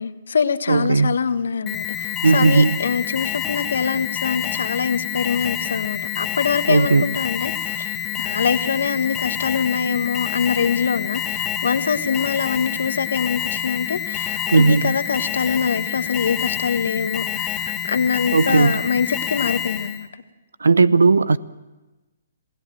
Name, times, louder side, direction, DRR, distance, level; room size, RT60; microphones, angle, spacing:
voice 1, 0.0-20.1, left 6 dB, 75° left, 1.4 m, -24 dB
voice 2, 0.7-1.2 2.2-2.8 6.7-7.0 14.5-14.9 18.3-18.8 20.6-21.4, right 4 dB, 90° right, 0.8 m, -16 dB
Alarm, 1.7-20.1, left 10 dB, 15° left, 1.4 m, -27 dB
27.5 x 17.5 x 7.7 m
hypercardioid pair, 140°, 0 cm